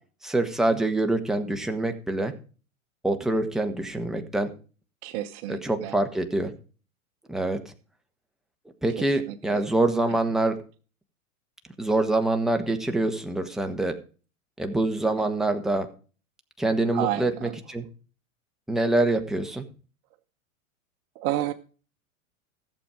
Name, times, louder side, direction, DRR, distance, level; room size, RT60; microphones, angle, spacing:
voice 1, 0.2-2.3 3.0-4.5 5.5-6.5 7.3-7.7 8.8-10.6 11.8-14.0 14.6-15.9 16.6-17.8 18.7-19.7, right 2 dB, ahead, 5 dB, 1.5 m, -25 dB
voice 2, 5.0-6.0 9.0-9.7 15.2-15.3 16.9-17.6 21.1-21.5, right 13 dB, 45° right, 10 dB, 1.0 m, -31 dB
14.5 x 7.4 x 5.0 m, 0.37 s
hypercardioid pair, 100°, 41 cm